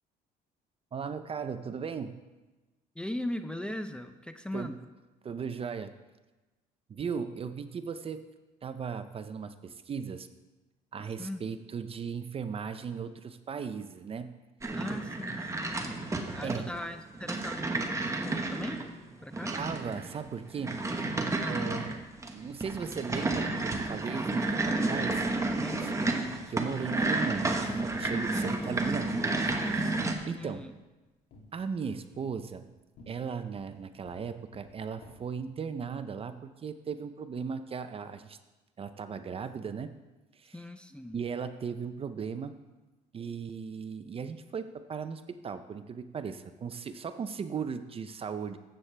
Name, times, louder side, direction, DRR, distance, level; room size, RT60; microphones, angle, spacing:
voice 1, 0.9-2.2 4.5-4.7 5.2-5.9 6.9-8.3 8.6-10.3 10.9-14.3 16.4-16.7 19.5-20.9 21.5-22.0 22.3-29.1 29.6-30.0 30.2-30.6 31.5-32.7 33.1-38.4 38.8-39.9 40.4-40.5 41.1-42.5 43.1-48.6, right 6 dB, 35° right, 10 dB, 0.6 m, -37 dB
voice 2, 2.9-4.9 11.2-11.4 14.8-16.0 16.3-18.8 19.2-19.6 21.4-21.8 25.6-26.1 28.3-28.9 30.4-30.7 40.5-41.2 43.2-43.4, left 1 dB, 5° left, 8 dB, 0.6 m, -39 dB
sound 1, 14.6-30.1, right 2 dB, 15° right, 1.1 m, -31 dB
sound 2, 19.4-19.7 20.1-20.9 21.2-21.5 21.8-24.6 24.9-25.9 26.3-26.7 27.0-27.2 27.6-28.2 28.5-29.8 30.4-30.8 31.3-31.8 32.1-35.3, left 2 dB, 75° left, 2.9 m, -55 dB
14.5 x 8.1 x 3.4 m, 1.1 s
cardioid pair, 110°, 17 cm